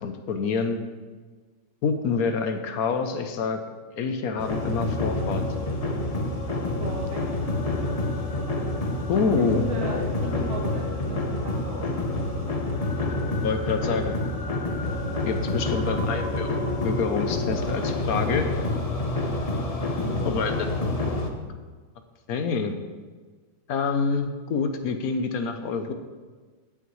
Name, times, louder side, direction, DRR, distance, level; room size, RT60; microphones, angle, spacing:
voice 1, 0.0-0.8 1.8-3.6 4.0-5.4 9.1-10.4 13.4-14.1 15.2-16.6 16.8-18.5 20.2-20.7 22.3-22.8 23.7-25.9, left 5 dB, 70° left, 7 dB, 1.1 m, -27 dB
sound 1, 4.4-21.3, left 2 dB, 35° left, 0.6 m, -28 dB
voice 2, 6.8-7.2 9.4-12.3 20.0-20.3, right 1 dB, 65° right, -5 dB, 2.6 m, -36 dB
16.5 x 5.8 x 3.1 m, 1.4 s
omnidirectional pair, 1.7 m